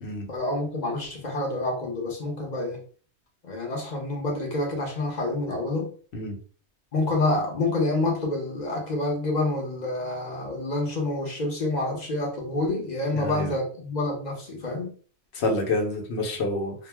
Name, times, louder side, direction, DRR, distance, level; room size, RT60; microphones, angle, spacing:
voice 1, 0.3-2.8 3.4-5.9 6.9-14.9, left 2 dB, 45° left, -1 dB, 0.8 m, -28 dB
voice 2, 13.1-13.5 15.3-16.7, left 2 dB, 70° left, 1 dB, 1.0 m, -28 dB
2.4 x 2.1 x 3.3 m, 0.42 s
omnidirectional pair, 1.2 m